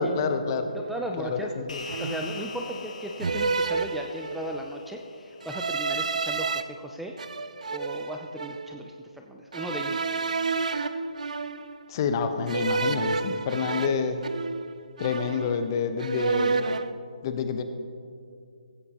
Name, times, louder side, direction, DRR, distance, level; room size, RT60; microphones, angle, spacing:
voice 1, 0.0-0.7 1.2-1.8 11.9-14.2 15.0-16.5 17.2-17.6, left 5 dB, 35° left, 8 dB, 1.0 m, -28 dB
voice 2, 0.7-1.5 2.0-7.1 7.7-10.2, right 1 dB, ahead, 1 dB, 0.5 m, -36 dB
sound 1, 0.8-1.0 1.9-2.4 3.2-4.6 5.4-6.6 7.2-8.7 9.5-11.9 12.5-14.7 15.0-15.7 16.0-16.9, right 4 dB, 70° right, 0.7 m, -30 dB
sound 2, 1.7-6.3, left 3 dB, 75° left, 2.4 m, -43 dB
17.0 x 15.5 x 3.0 m, 2.4 s
figure-of-eight pair, 150°, 4 cm